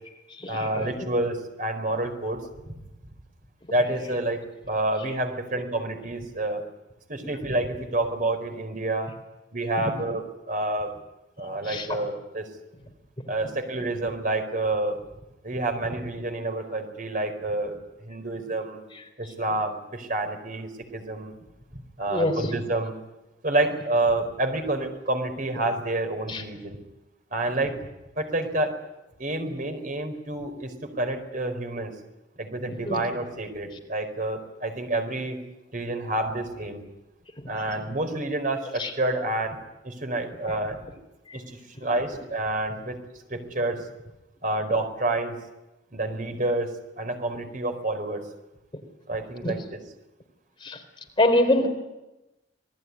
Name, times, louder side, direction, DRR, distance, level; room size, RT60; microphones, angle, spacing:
voice 1, 0.5-2.4 2.7-2.8 3.7-6.6 7.1-9.1 9.5-10.9 11.4-12.5 13.3-15.0 15.4-17.8 18.0-18.9 19.2-21.3 21.7-23.0 23.4-26.8 27.3-27.8 28.2-28.8 29.2-31.9 32.4-35.4 35.7-36.8 37.5-39.6 39.8-40.8 41.3-43.0 43.3-43.8 44.4-45.3 45.9-48.2 49.1-49.8, right 2 dB, 45° right, 7 dB, 4.6 m, -28 dB
voice 2, 51.2-51.7, left 1 dB, 25° left, 5 dB, 3.9 m, -21 dB
27.5 x 19.5 x 9.8 m, 1.0 s
head